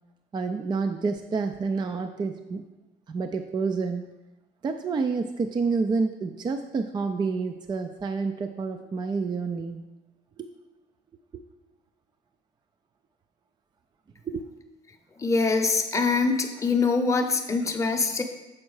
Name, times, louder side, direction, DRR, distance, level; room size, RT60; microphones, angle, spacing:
voice 1, 0.3-2.6 3.1-4.1 4.6-9.9 10.4-10.5 11.3-11.4 14.2-14.4, right 4 dB, 25° right, 7 dB, 0.4 m, -29 dB
voice 2, 15.2-18.2, left 4 dB, 20° left, 3 dB, 0.8 m, -24 dB
7.3 x 4.4 x 4.7 m, 1.0 s
cardioid pair, 110°, 17 cm